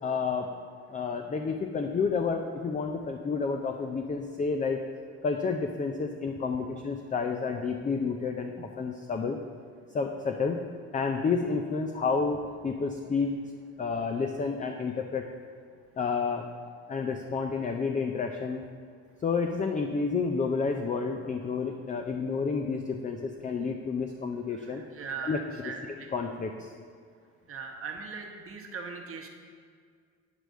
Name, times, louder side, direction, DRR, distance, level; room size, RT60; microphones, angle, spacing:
voice 1, 0.0-0.5 0.9-4.8 5.2-9.4 9.9-10.6 10.9-13.3 13.8-15.3 16.0-16.5 16.9-18.6 19.2-24.8 25.2-26.7, left 5 dB, 25° left, 4 dB, 0.5 m, -30 dB
voice 2, 24.7-26.1 27.5-29.3, right 4 dB, 45° right, 2 dB, 1.1 m, -39 dB
9.2 x 3.3 x 6.3 m, 2.1 s
cardioid pair, 90°, 30 cm